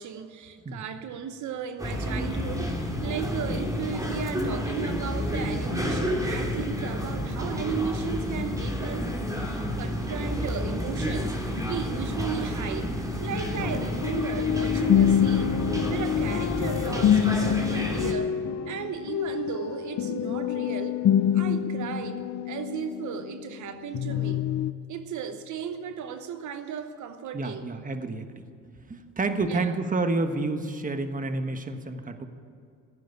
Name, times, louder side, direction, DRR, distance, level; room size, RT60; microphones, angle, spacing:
voice 1, 0.0-11.4 11.6-12.9 13.2-15.5 15.9-18.4 18.7-21.0 21.3-24.4 24.9-27.7 29.5-29.8, right 7 dB, 75° right, 9 dB, 1.0 m, -35 dB
sound 1, 1.8-18.1, left 1 dB, 10° right, 2.9 m, -30 dB
sound 2, 13.6-23.6 23.9-24.7, left 9 dB, 60° left, 0.7 m, -26 dB
voice 2, 27.3-28.4 28.9-32.3, right 3 dB, 25° right, 8 dB, 1.4 m, -29 dB
16.0 x 9.3 x 9.7 m, 2.4 s
cardioid pair, 90°, 30 cm